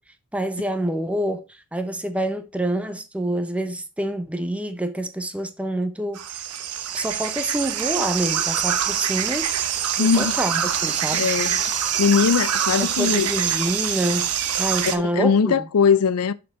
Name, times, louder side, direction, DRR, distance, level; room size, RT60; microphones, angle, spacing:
voice 1, 0.3-6.2 6.9-9.5 10.0-11.4 12.8-14.3 14.6-15.7, right 1 dB, 5° right, 0.6 m, -27 dB
sound 1, 6.1-15.0, right 9 dB, 90° right, 0.9 m, -25 dB
voice 2, 10.0-10.3 11.1-11.6 12.0-13.3 14.8-16.3, left 6 dB, 90° left, 0.5 m, -20 dB
6.6 x 4.4 x 4.0 m
head